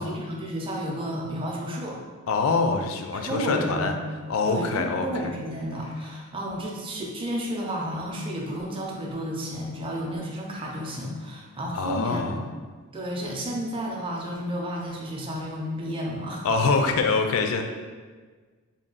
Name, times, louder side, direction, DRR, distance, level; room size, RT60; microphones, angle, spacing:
voice 1, 0.0-2.0 3.1-3.9 4.5-12.4 12.9-16.5, equal, 25° right, -1 dB, 0.5 m, -32 dB
voice 2, 2.3-4.0 4.3-5.1 11.7-12.3 16.4-17.6, left 4 dB, 70° left, 5 dB, 0.4 m, -24 dB
3.6 x 2.2 x 3.8 m, 1.5 s
head